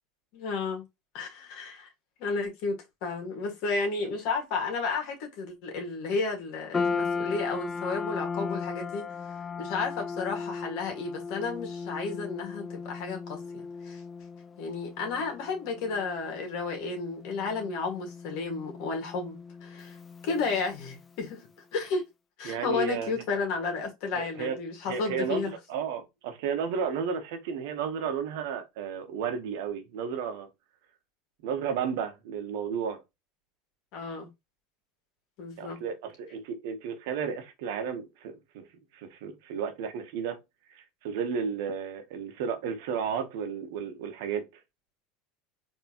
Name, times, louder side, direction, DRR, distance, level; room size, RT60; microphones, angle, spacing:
voice 1, 0.3-0.8 1.1-1.9 2.2-9.0 9.6-14.0 14.6-20.0 20.2-22.0 22.4-25.5 33.9-34.3 35.4-35.8, left 4 dB, 65° left, 1.7 m, -32 dB
sound 1, 6.7-21.2, left 5 dB, 25° left, 0.4 m, -37 dB
voice 2, 22.4-23.1 24.1-24.6 24.9-30.5 31.4-33.0 35.6-38.6 38.9-40.4 40.7-44.5, right 6 dB, 70° right, 1.0 m, -33 dB
4.5 x 3.0 x 2.9 m
hypercardioid pair, 90°, 0 cm